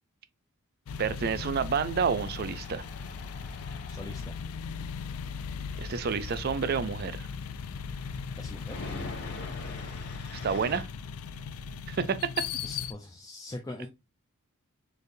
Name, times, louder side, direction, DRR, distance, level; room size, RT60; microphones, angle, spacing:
sound 1, 0.9-12.9, left 6 dB, 85° left, 0.4 m, -38 dB
voice 1, 1.0-2.8 5.8-7.3 10.4-10.9 11.9-12.2, right 6 dB, 45° right, 0.4 m, -29 dB
Tools, 1.9-10.8, left 2 dB, 50° left, 1.3 m, -46 dB
voice 2, 3.9-4.4 8.4-8.8 12.6-13.9, left 2 dB, 15° left, 0.4 m, -42 dB
4.3 x 3.3 x 2.6 m
head